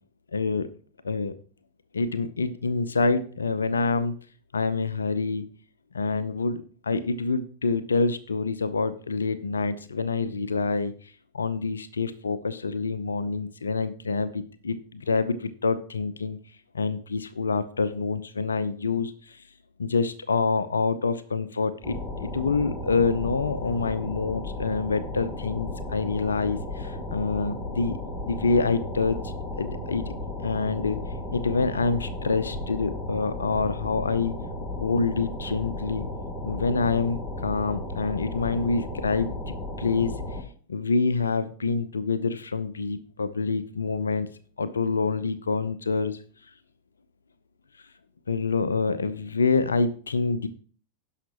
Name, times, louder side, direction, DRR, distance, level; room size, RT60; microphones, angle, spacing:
voice 1, 0.3-0.7 1.0-1.3 1.9-4.1 4.5-5.4 5.9-10.9 11.3-16.4 16.7-19.4 19.8-28.0 28.2-30.1 30.4-31.0 31.3-34.4 34.8-36.0 36.4-40.2 40.7-44.3 44.6-46.2 48.3-50.5, left 4 dB, 75° left, 13 dB, 0.6 m, -26 dB
sound 1, 21.8-40.4, left 1 dB, 5° left, 2.7 m, -34 dB
17.0 x 5.8 x 2.9 m, 0.42 s
figure-of-eight pair, 90°, 0 cm